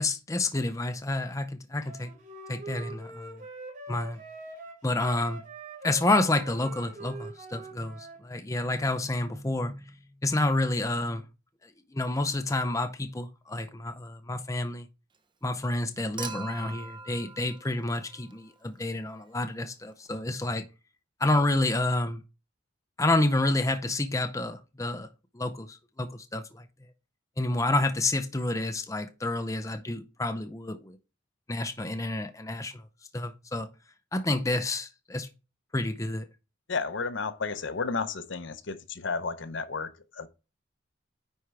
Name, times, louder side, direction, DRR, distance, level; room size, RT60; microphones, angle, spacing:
voice 1, 0.0-2.1 2.5-3.3 3.9-4.2 4.8-5.4 5.8-11.3 11.6-14.9 15.4-20.6 21.2-22.2 23.0-25.1 25.3-26.6 27.4-31.0 31.5-32.8 33.1-33.7 34.1-35.3 35.7-36.2, left 2 dB, 15° left, 0.6 m, -29 dB
Wind instrument woodwind instrument, 1.8-8.2, right 3 dB, 40° right, 3.0 m, -44 dB
Human group actions / Chink clink / Liquid, 16.2-18.6 20.1-20.2, right 5 dB, 25° right, 0.7 m, -42 dB
voice 2, 36.7-40.3, left 4 dB, 60° left, 0.7 m, -32 dB
9.6 x 4.5 x 3.4 m
head